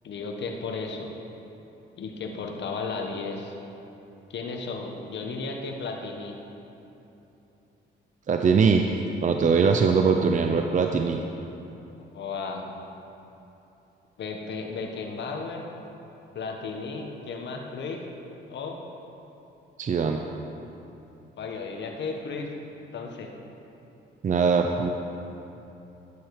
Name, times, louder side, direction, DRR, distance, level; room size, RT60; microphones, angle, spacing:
voice 1, 0.0-1.1 2.0-3.5 4.3-6.4 12.0-12.6 14.2-15.7 16.3-18.0 18.5-18.8 21.4-22.5 22.9-23.3, left 4 dB, 65° left, 2 dB, 1.6 m, -34 dB
voice 2, 8.3-8.9 9.2-11.2 19.8-20.2 24.2-24.9, right 5 dB, 40° right, 4 dB, 0.7 m, -21 dB
12.0 x 10.5 x 5.0 m, 3.0 s
cardioid pair, 90°, 20 cm